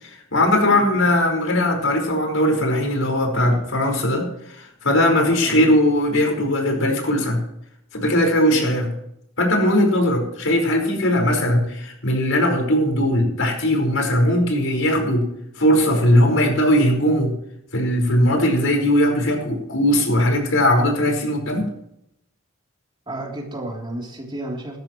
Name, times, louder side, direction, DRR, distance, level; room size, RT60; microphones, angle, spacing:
voice 1, 0.0-7.4 7.9-8.9 9.4-15.2 15.6-17.3 17.7-21.7, left 1 dB, 80° left, 2 dB, 5.0 m, -19 dB
voice 2, 0.6-1.0 5.4-5.8 8.5-8.7 23.1-24.8, right 1 dB, 25° right, -1 dB, 3.3 m, -32 dB
18.5 x 13.5 x 3.1 m, 0.79 s
head